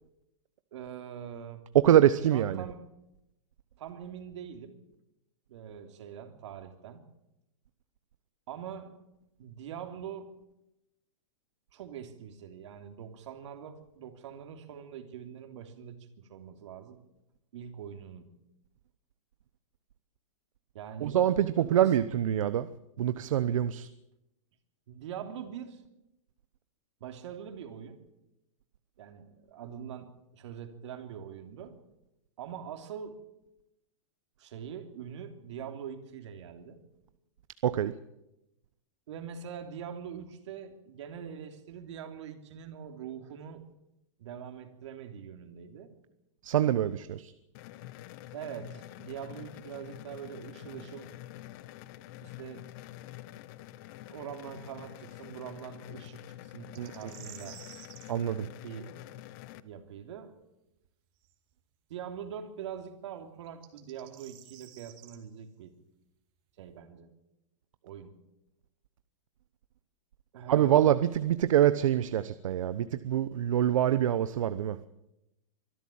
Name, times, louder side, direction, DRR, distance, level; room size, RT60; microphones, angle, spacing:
voice 1, 0.7-1.6 2.3-2.9 3.8-4.8 5.5-7.0 8.5-9.0 9.4-10.3 11.7-17.0 17.5-18.3 20.7-21.2 21.5-21.9 24.9-25.8 27.0-28.0 29.0-31.8 32.4-33.2 34.4-36.8 39.1-43.6 44.2-45.9 48.3-51.1 52.2-52.7 54.1-57.6 58.6-58.9 59.6-60.4 61.9-65.7 66.6-67.1 67.8-68.1 70.3-70.8, right 8 dB, 60° right, 6 dB, 3.2 m, -43 dB
voice 2, 1.7-2.6 21.0-22.7 23.0-23.9 37.6-37.9 46.4-47.3 56.8-56.9 58.1-58.5 70.5-74.8, right 11 dB, 75° right, 13 dB, 1.0 m, -25 dB
sound 1, 47.5-59.6, left 15 dB, 35° left, 0.8 m, -47 dB
sound 2, 56.7-58.1 61.3-61.4 63.5-65.2, right 13 dB, 30° right, 2.4 m, -51 dB
24.0 x 13.0 x 8.6 m, 0.90 s
supercardioid pair, 165°, 17 cm